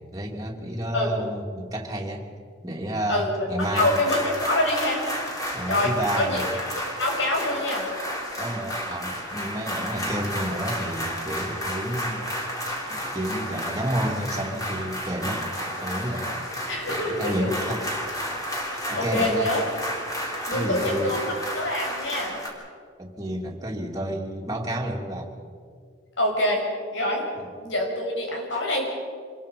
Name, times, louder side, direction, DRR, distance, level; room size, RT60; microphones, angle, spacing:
voice 1, 0.0-2.3 2.6-4.0 5.5-6.5 8.4-12.3 12.9-15.4 15.8-16.3 16.9-17.9 18.9-19.5 20.5-21.2 23.0-25.3 27.4-27.5, right 1 dB, 20° right, -1 dB, 2.8 m, -30 dB
voice 2, 3.1-5.0 5.7-6.4 7.0-7.9 16.7-17.5 18.9-19.6 20.5-21.2 21.5-22.4 26.2-26.6 26.9-27.3 27.6-28.9, left 1 dB, 85° left, 0 dB, 6.3 m, -25 dB
sound 1, 3.6-22.5, equal, 20° left, 3.9 m, -32 dB
27.0 x 21.0 x 5.4 m, 2.1 s
head